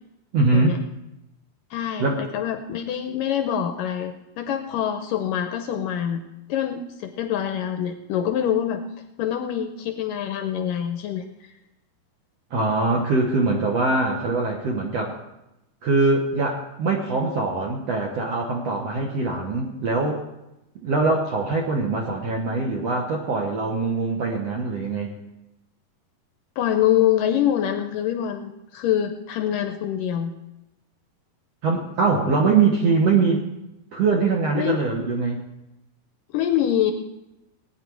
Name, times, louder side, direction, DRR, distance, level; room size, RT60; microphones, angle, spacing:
voice 1, 0.3-0.8 2.0-2.2 12.5-15.2 15.8-20.2 20.8-25.1 31.6-33.4 33.9-35.4, right 3 dB, 65° right, 0 dB, 1.7 m, -22 dB
voice 2, 1.7-6.2 6.5-8.8 9.2-11.3 26.6-30.3 34.5-34.8 36.3-36.9, left 10 dB, 80° left, 6 dB, 2.1 m, -25 dB
18.5 x 9.8 x 4.7 m, 0.91 s
omnidirectional pair, 4.5 m